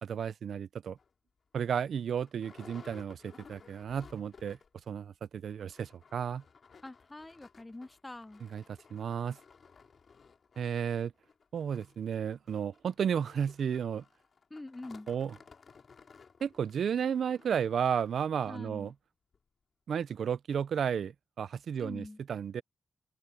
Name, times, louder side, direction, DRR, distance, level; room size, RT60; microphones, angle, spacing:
voice 1, 0.0-1.0 1.5-4.6 4.9-6.4 8.4-8.6 8.9-9.4 10.6-11.1 11.5-14.0 15.1-15.4 16.4-18.9 19.9-22.6, right 7 dB, 75° right, 0.6 m, -33 dB
sound 1, 1.0-1.1 1.6-1.7 1.9-4.8 5.1-5.2 5.5-18.3 18.9-19.0 19.3-19.4, left 5 dB, 55° left, 3.7 m, -57 dB
voice 2, 6.8-8.4 14.5-15.1 18.5-18.9 21.8-22.2, left 2 dB, 15° left, 1.0 m, -45 dB
open air
wide cardioid pair, 105°, 0 cm